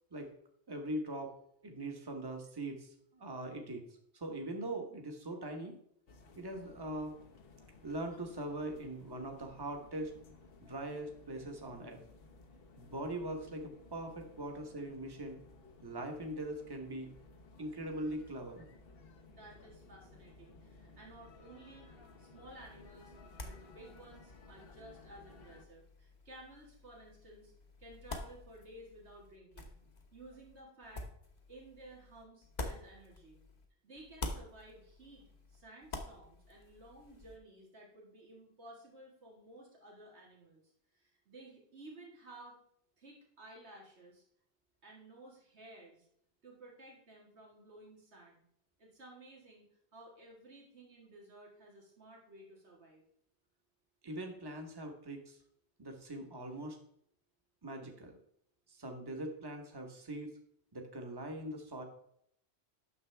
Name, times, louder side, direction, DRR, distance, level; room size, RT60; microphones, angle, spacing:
voice 1, 0.7-1.4 1.6-3.8 4.1-5.8 6.4-7.1 7.8-10.1 10.6-12.0 12.8-15.4 15.8-17.1 17.6-18.7 54.0-55.4 55.8-56.8 57.6-58.2 58.7-60.3 60.7-61.8, right 1 dB, 20° right, 3 dB, 1.1 m, -41 dB
sound 1, 6.1-25.6, left 3 dB, 65° left, 1.1 m, -58 dB
voice 2, 19.3-21.9 22.2-23.1 23.4-27.5 27.8-29.7 30.1-31.1 31.5-33.4 33.8-35.2 35.5-42.6 43.0-44.2 44.8-46.1 46.4-48.4 48.8-49.7 49.9-53.0, right 1 dB, 85° right, -2 dB, 2.2 m, -55 dB
sound 2, 22.5-33.7 33.9-37.4, left 2 dB, 40° left, 1.1 m, -48 dB
9.7 x 6.7 x 3.4 m, 0.71 s
omnidirectional pair, 1.1 m